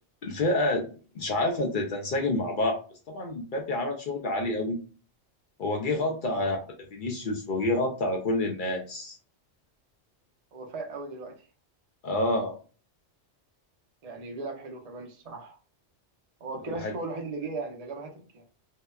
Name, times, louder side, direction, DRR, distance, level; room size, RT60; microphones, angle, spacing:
voice 1, 0.2-0.9 1.1-2.8 3.1-4.8 5.6-6.6 6.9-9.2 12.0-12.5 16.7-16.9, left 2 dB, 60° left, 2 dB, 0.6 m, -28 dB
voice 2, 6.3-6.6 10.5-11.3 14.0-15.6 16.4-18.4, right 3 dB, 45° right, 2 dB, 0.6 m, -37 dB
2.8 x 2.1 x 2.2 m, 0.37 s
omnidirectional pair, 1.2 m